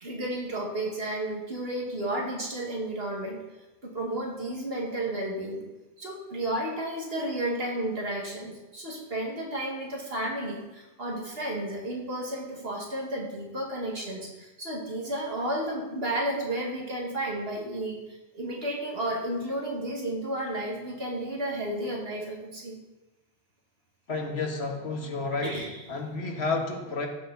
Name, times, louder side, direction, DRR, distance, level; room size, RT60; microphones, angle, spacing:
voice 1, 0.0-3.4 3.8-5.6 6.0-22.8 25.4-25.8, right 1 dB, 65° right, -1 dB, 2.3 m, -32 dB
voice 2, 24.1-25.6 25.9-27.1, left 3 dB, 80° left, 3 dB, 1.6 m, -31 dB
14.5 x 6.8 x 4.0 m, 1.0 s
omnidirectional pair, 1.1 m